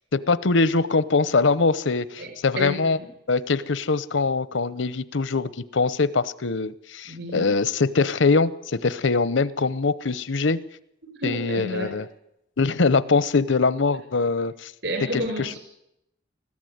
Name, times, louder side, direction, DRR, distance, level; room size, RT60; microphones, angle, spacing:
voice 1, 0.1-3.0 3.3-10.6 11.2-12.1 12.6-14.7 15.1-15.6, left 4 dB, 75° left, 18 dB, 0.8 m, -23 dB
voice 2, 2.6-3.1 7.1-7.5 11.0-12.0 14.8-15.6, equal, 60° right, 3 dB, 5.8 m, -31 dB
20.0 x 14.5 x 9.4 m, 0.82 s
head